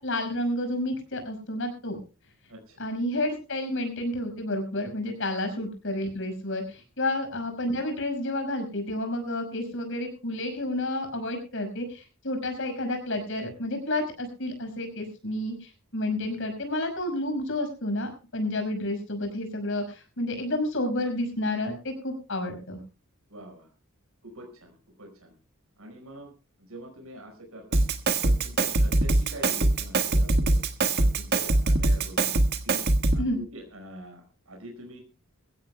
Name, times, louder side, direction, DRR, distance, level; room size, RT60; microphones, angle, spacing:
voice 1, 0.0-2.0 2.8-22.8 33.2-33.4, left 1 dB, 60° left, 6 dB, 5.6 m, -30 dB
voice 2, 2.5-2.8 23.3-23.7 24.2-25.3 25.8-26.3 26.6-27.8 28.2-30.6 31.0-35.0, right 1 dB, 75° right, 3 dB, 5.0 m, -44 dB
Drum kit, 27.7-33.3, right 2 dB, 50° right, 1.5 m, -23 dB
23.5 x 16.0 x 2.2 m, 0.33 s
head